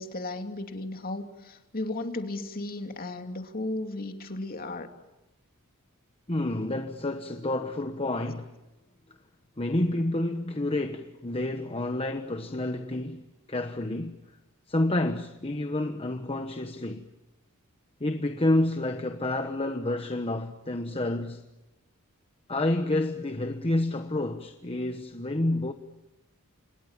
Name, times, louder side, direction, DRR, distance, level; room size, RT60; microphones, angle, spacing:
voice 1, 0.0-4.9, left 2 dB, 40° left, 2.7 m, -35 dB
voice 2, 6.3-8.5 9.6-14.2 14.7-17.1 18.0-21.4 22.5-25.7, left 1 dB, 25° left, 1.2 m, -29 dB
29.5 x 27.0 x 7.4 m
head